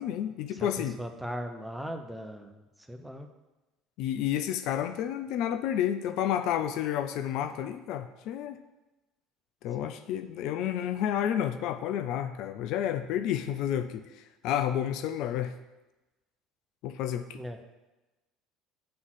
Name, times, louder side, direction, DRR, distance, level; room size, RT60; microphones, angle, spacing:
voice 1, 0.0-1.0 4.0-8.6 9.6-15.6 16.8-17.4, left 10 dB, 55° left, 9 dB, 0.4 m, -30 dB
voice 2, 0.5-3.3 9.8-9.9 17.3-17.6, equal, 5° right, 5 dB, 0.9 m, -39 dB
7.6 x 3.9 x 6.0 m, 1.1 s
figure-of-eight pair, 65°, 0 cm